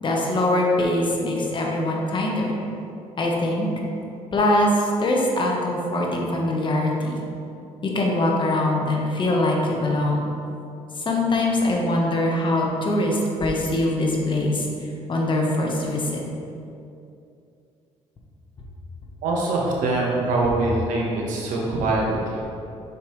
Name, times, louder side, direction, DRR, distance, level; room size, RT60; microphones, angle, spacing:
voice 1, 0.0-2.6 3.2-3.7 4.3-7.2 7.8-10.2 11.0-14.7 15.1-16.2, left 1 dB, 40° left, -1 dB, 1.2 m, -22 dB
voice 2, 19.2-22.4, right 2 dB, 85° right, -3 dB, 1.2 m, -23 dB
6.7 x 5.1 x 3.2 m, 2.6 s
cardioid pair, 85°, 13 cm